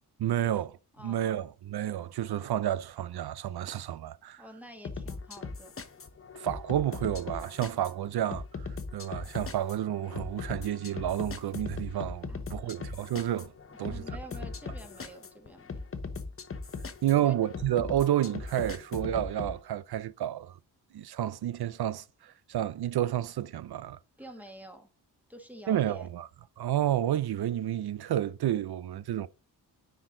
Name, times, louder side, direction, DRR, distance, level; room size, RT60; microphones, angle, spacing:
voice 1, 0.2-0.7 1.0-4.4 6.4-13.5 13.8-14.0 17.0-20.6 20.9-24.0 25.7-26.3 26.6-29.3, right 11 dB, 70° right, 0.5 m, -30 dB
voice 2, 1.0-1.4 4.4-5.7 12.3-12.8 13.8-15.9 17.1-17.4 24.2-24.9 25.3-26.1, equal, 5° right, 1.2 m, -48 dB
sound 1, 4.8-19.5, left 4 dB, 35° left, 0.9 m, -39 dB
9.9 x 4.5 x 3.7 m
wide cardioid pair, 140°, 39 cm